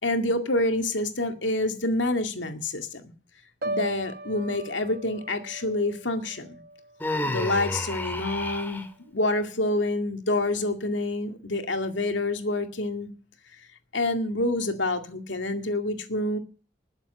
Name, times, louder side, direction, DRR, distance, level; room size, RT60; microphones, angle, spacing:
voice 1, 0.0-3.0 3.7-6.6 7.3-13.1 13.9-16.4, left 2 dB, 85° left, 2.1 m, -27 dB
Piano, 3.6-7.6 8.0-8.3, right 1 dB, 55° right, 1.3 m, -38 dB
Human voice, 7.0-8.9, left 1 dB, 10° left, 1.8 m, -30 dB
20.0 x 7.4 x 6.8 m
head